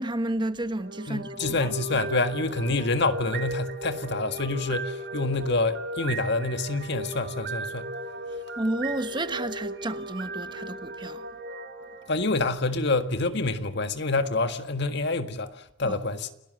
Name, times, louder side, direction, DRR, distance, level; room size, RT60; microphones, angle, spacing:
voice 1, 0.0-1.7 8.6-11.3 15.8-16.0, right 1 dB, 25° right, 1.2 m, -31 dB
sound 1, 0.7-12.8, right 1 dB, 60° right, 2.4 m, -36 dB
voice 2, 1.1-7.9 12.1-16.3, left 3 dB, 60° left, 1.7 m, -27 dB
29.5 x 18.0 x 7.9 m
head